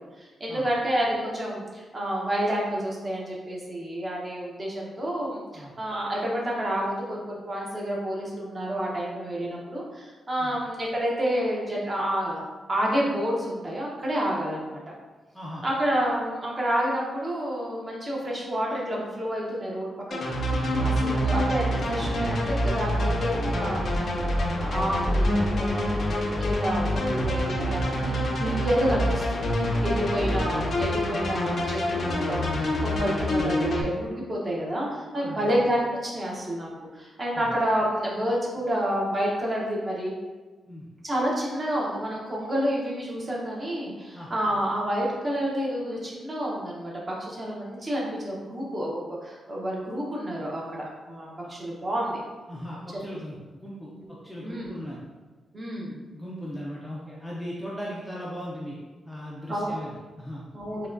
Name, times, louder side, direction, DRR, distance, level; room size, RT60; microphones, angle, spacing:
voice 1, 0.0-12.4 12.7-14.8 15.6-24.3 24.6-40.1 41.0-52.2 54.4-54.7 55.5-56.0 59.5-59.8 60.5-60.9, equal, 25° right, -4 dB, 0.8 m, -29 dB
voice 2, 15.3-15.7 20.7-21.0 29.9-30.2 33.0-33.2 35.1-35.6 37.3-37.5 40.7-40.9 44.1-44.3 52.5-53.9 54.2-55.0 56.1-58.8 59.0-60.5, equal, 5° left, -6 dB, 0.5 m, -38 dB
sound 1, 20.1-33.8, equal, 50° left, 0.6 m, -26 dB
5.4 x 2.2 x 2.5 m, 1.3 s
wide cardioid pair, 155°, 0 cm